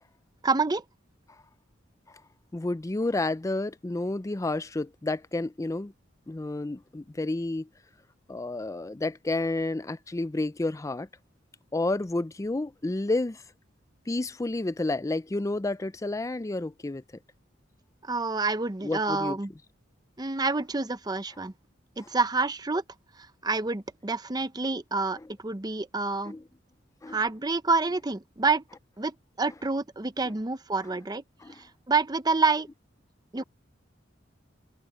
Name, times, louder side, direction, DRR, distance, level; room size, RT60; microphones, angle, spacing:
voice 1, 0.4-0.8 18.0-19.5 20.2-21.5 22.0-22.8 23.4-25.2 25.4-26.3 27.1-28.6 29.0-31.2 31.9-32.7 33.3-33.4, right 3 dB, 20° right, 0.7 m, -27 dB
voice 2, 2.5-5.9 6.3-7.7 8.3-11.1 11.7-13.4 14.1-17.0 18.8-19.4 26.3-26.4 27.0-27.2 30.2-30.3 31.4-31.6 33.4-33.5, left 2 dB, 15° left, 0.4 m, -30 dB
open air
head